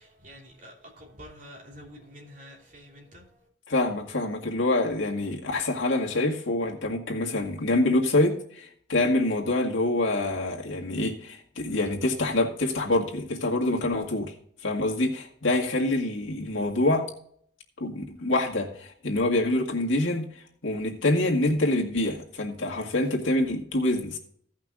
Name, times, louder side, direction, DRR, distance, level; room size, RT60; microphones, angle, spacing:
voice 1, 0.0-3.2, equal, 40° right, -2 dB, 3.1 m, -48 dB
voice 2, 3.7-14.3 14.6-17.1 17.8-20.3 20.6-24.2, left 2 dB, 80° left, 0 dB, 2.0 m, -26 dB
16.0 x 5.8 x 3.7 m, 0.62 s
head